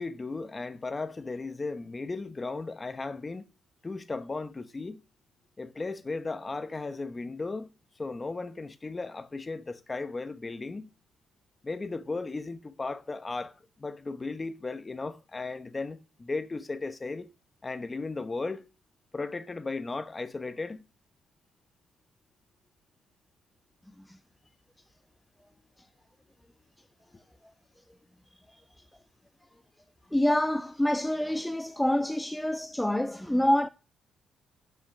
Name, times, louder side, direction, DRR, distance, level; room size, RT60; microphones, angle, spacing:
voice 1, 0.0-3.5 3.8-5.0 5.6-10.9 11.6-17.3 17.6-18.7 19.1-20.8, left 3 dB, 25° left, 1.0 m, -36 dB
voice 2, 30.1-33.7, left 1 dB, 5° left, 0.5 m, -26 dB
10.0 x 5.7 x 6.2 m
cardioid pair, 90°, 0 cm